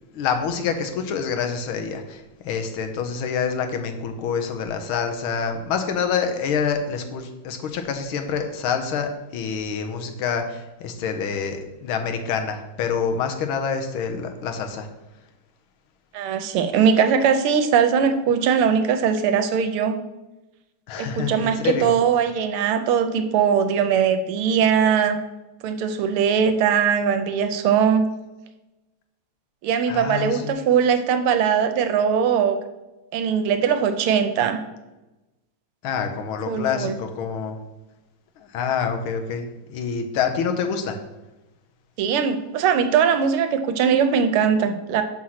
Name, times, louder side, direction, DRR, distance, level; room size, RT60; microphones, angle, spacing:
voice 1, 0.1-14.9 20.9-21.9 29.9-30.5 35.8-37.6 38.4-41.0, left 6 dB, 75° left, 6 dB, 1.6 m, -27 dB
voice 2, 16.1-20.0 21.0-25.2 25.6-28.1 29.6-32.6 33.1-34.6 36.5-37.0 42.0-45.0, right 7 dB, 80° right, 8 dB, 1.5 m, -20 dB
6.2 x 4.6 x 5.6 m, 1.0 s
omnidirectional pair, 2.4 m